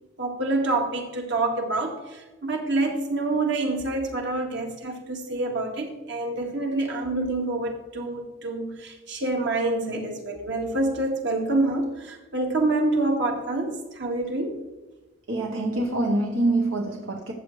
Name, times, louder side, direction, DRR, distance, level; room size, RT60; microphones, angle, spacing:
voice 1, 0.2-14.6, right 2 dB, 65° right, 1.9 m, -27 dB
voice 2, 15.3-17.3, right 2 dB, 90° right, 1.1 m, -25 dB
13.5 x 8.0 x 3.2 m
head